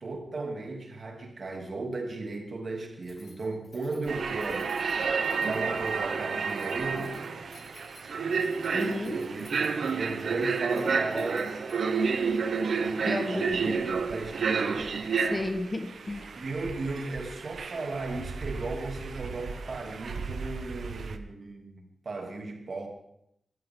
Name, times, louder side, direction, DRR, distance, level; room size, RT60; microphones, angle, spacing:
voice 1, 0.0-4.8 5.1-7.2 9.1-11.6 13.3-15.0 16.4-22.9, right 3 dB, 55° right, 2 dB, 3.0 m, -36 dB
Keys jangling, 3.0-12.0, left 3 dB, 55° left, 6.7 m, -56 dB
sound 1, 4.1-21.2, right 5 dB, 85° right, 1.0 m, -31 dB
voice 2, 8.7-9.2 13.0-13.5 15.2-16.3, left 2 dB, 30° left, 7 dB, 1.4 m, -32 dB
22.5 x 14.5 x 3.9 m, 0.74 s
wide cardioid pair, 125°, 0 cm